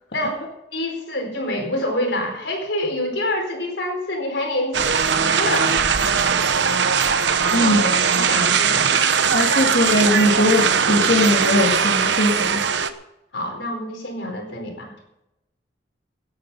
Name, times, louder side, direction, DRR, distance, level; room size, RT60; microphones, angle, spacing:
voice 1, 0.1-0.4 0.7-5.8 6.2-6.3 7.4-8.9 10.3-10.6 13.3-14.9, left 1 dB, 80° left, 3 dB, 4.3 m, -27 dB
sound 1, 4.7-12.9, right 6 dB, 80° right, 0.9 m, -19 dB
voice 2, 7.5-7.8 9.3-12.7, left 1 dB, 60° left, -3 dB, 2.1 m, -20 dB
18.0 x 9.5 x 5.5 m, 0.88 s
head